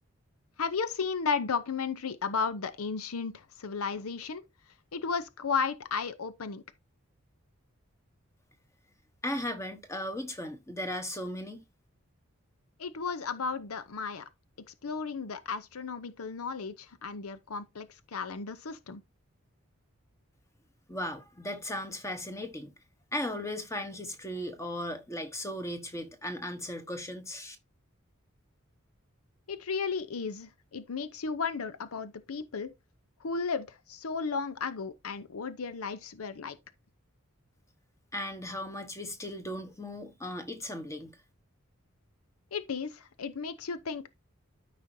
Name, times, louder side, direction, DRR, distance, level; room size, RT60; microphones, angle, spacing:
voice 1, 0.6-4.4 4.9-6.6 12.8-14.3 14.7-19.0 29.5-32.7 33.2-36.6 42.5-44.1, left 5 dB, 90° left, 0.7 m, -34 dB
voice 2, 9.2-11.6 20.9-22.7 23.1-27.6 38.1-41.1, left 1 dB, 15° left, 1.0 m, -37 dB
13.0 x 5.0 x 2.7 m
head